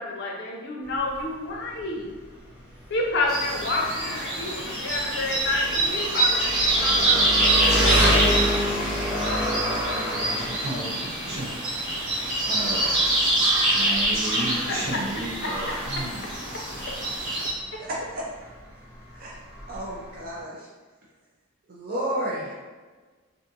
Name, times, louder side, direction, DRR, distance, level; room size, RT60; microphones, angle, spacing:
voice 1, 0.0-2.1 2.9-7.6 14.7-15.0 15.4-16.0, left 2 dB, 55° left, 0 dB, 0.5 m, -29 dB
Engine, 0.8-20.4, equal, 5° right, 0.6 m, -30 dB
sound 1, 3.3-17.5, right 2 dB, 75° right, 1.2 m, -25 dB
voice 2, 10.1-12.0 12.4-16.2, right 1 dB, 90° right, -5 dB, 0.8 m, -34 dB
voice 3, 17.8-18.2 19.1-19.4 19.7-20.7 21.7-22.5, right 1 dB, 45° right, -5 dB, 0.4 m, -31 dB
2.5 x 2.4 x 2.7 m, 1.4 s
head